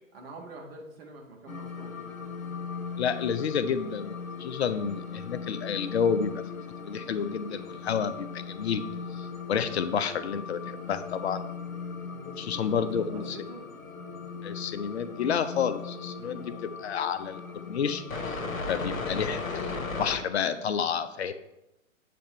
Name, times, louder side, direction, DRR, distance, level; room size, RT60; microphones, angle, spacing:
voice 1, 0.1-2.0 12.0-13.7 16.3-16.5, right 2 dB, 45° right, 0 dB, 1.5 m, -46 dB
sound 1, 1.5-20.2, left 4 dB, 75° left, 1.0 m, -38 dB
voice 2, 3.0-6.4 6.8-8.8 9.5-11.4 12.4-13.4 14.4-16.5 16.8-18.4 18.7-21.3, left 7 dB, 50° left, 11 dB, 0.6 m, -30 dB
8.5 x 3.4 x 4.3 m, 0.91 s
figure-of-eight pair, 125°, 41 cm